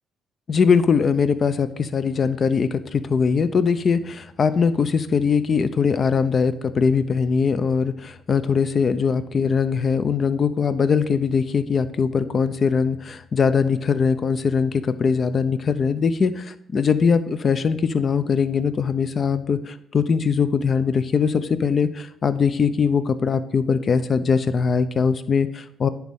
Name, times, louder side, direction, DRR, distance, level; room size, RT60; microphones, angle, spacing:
voice 1, 0.5-25.9, left 5 dB, 50° left, 12 dB, 0.6 m, -21 dB
10.5 x 4.2 x 3.7 m, 0.83 s
supercardioid pair, 70°, 0 cm